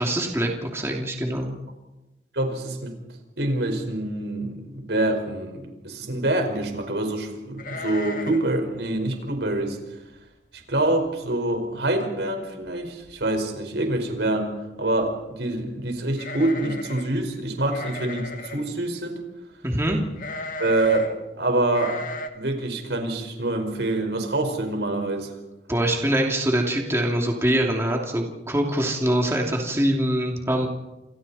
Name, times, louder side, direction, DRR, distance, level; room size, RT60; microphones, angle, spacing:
voice 1, 0.0-1.5 19.6-20.0 25.7-30.7, right 1 dB, 15° right, 0 dB, 2.8 m, -24 dB
voice 2, 2.3-2.9 3.4-9.8 10.7-14.5 14.8-19.2 20.6-21.0 21.4-21.9 22.3-25.3, right 2 dB, 80° right, 4 dB, 5.0 m, -26 dB
sound 1, 7.6-8.5 8.8-8.9 9.4-9.6 10.2-10.3 10.6-11.1 11.4-11.5 12.6-12.7 13.0-13.5 16.1-17.1 17.7-18.7 20.2-21.1 21.7-22.3, left 2 dB, 50° left, 2.1 m, -35 dB
29.0 x 27.5 x 4.3 m, 1.0 s
head